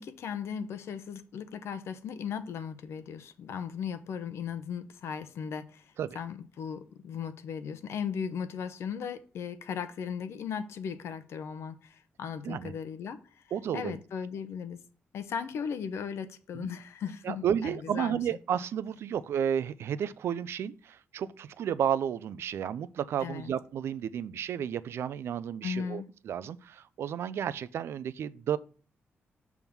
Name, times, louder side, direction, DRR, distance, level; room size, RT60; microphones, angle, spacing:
voice 1, 0.0-13.2 13.7-14.8 15.1-18.2 23.2-23.5 25.6-26.1, left 7 dB, 90° left, 0.7 m, -37 dB
voice 2, 13.5-14.0 16.5-16.7 17.2-28.6, right 9 dB, 75° right, 0.4 m, -32 dB
7.1 x 3.6 x 5.9 m
wide cardioid pair, 175°, 4 cm